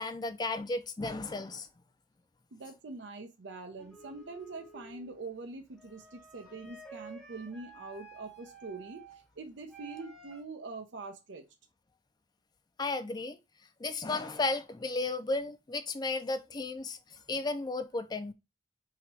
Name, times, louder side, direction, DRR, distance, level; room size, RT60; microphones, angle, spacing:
voice 1, 0.0-1.7 12.8-13.4 13.8-18.3, left 3 dB, 20° left, 0.4 m, -34 dB
voice 2, 2.5-9.0 9.4-11.4, right 3 dB, 70° right, 0.6 m, -44 dB
sound 1, 3.8-10.4, right 4 dB, 5° left, 0.8 m, -52 dB
3.0 x 2.9 x 4.5 m
head